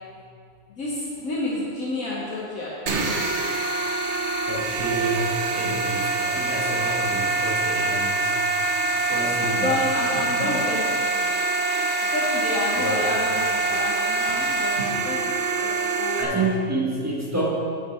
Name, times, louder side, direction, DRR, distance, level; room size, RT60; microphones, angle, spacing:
voice 1, 0.7-2.7 6.9-7.2 9.2-11.2 12.0-15.3 15.6-16.3, left 2 dB, 65° left, -6 dB, 1.5 m, -30 dB
sound 1, 2.9-16.2, right 3 dB, 55° right, 1.2 m, -25 dB
voice 2, 4.5-8.4 8.9-9.7 12.7-13.1 14.2-14.4 16.2-17.5, right 2 dB, 10° right, -3 dB, 1.2 m, -28 dB
8.4 x 8.1 x 4.4 m, 2.5 s
omnidirectional pair, 1.6 m